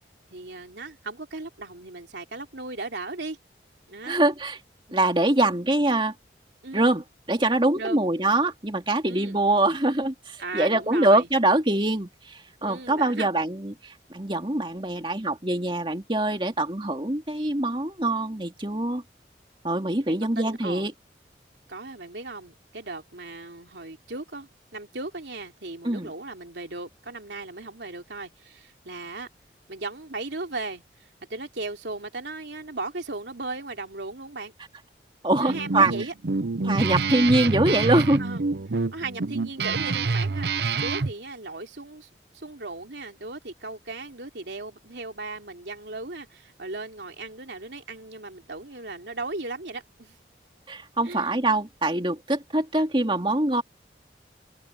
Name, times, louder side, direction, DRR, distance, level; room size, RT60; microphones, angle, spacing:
voice 1, 0.3-3.4 3.9-4.2 6.6-6.9 7.8-8.1 9.0-9.4 10.4-11.3 12.6-13.3 20.1-20.9 21.7-29.3 29.7-34.5 35.4-36.4 38.2-38.4 38.9-42.1 42.3-50.1 51.0-51.4, right 3 dB, 90° right, 3.2 m, -37 dB
voice 2, 4.1-4.6 4.9-6.1 6.7-19.0 19.6-20.9 25.8-26.1 35.2-35.9 36.6-38.2 50.7-53.6, right 2 dB, 30° right, 2.5 m, -24 dB
Guitar, 35.3-41.1, right 4 dB, 75° right, 0.7 m, -27 dB
open air
head